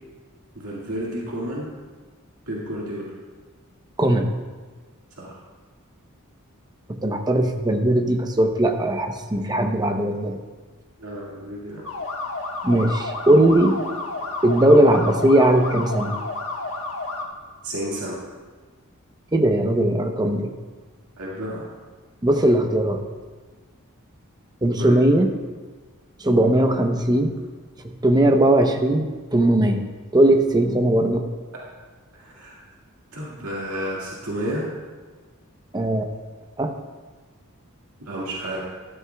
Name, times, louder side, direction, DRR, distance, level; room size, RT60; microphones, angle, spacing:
voice 1, 0.6-1.7 2.5-3.1 5.2-5.4 11.0-11.8 17.6-18.2 21.2-21.7 24.7-25.0 32.2-32.6 33.1-34.7 38.0-38.6, right 1 dB, 70° right, -5 dB, 2.0 m, -31 dB
voice 2, 4.0-4.3 6.9-10.4 12.6-13.8 14.4-16.2 19.3-20.5 22.2-23.0 24.6-25.3 26.2-27.3 27.8-31.2 35.7-36.1 36.6-36.7, right 1 dB, 20° right, 5 dB, 0.7 m, -19 dB
sound 1, 11.8-17.2, left 3 dB, 65° left, 1.3 m, -31 dB
13.0 x 12.5 x 2.3 m, 1.4 s
head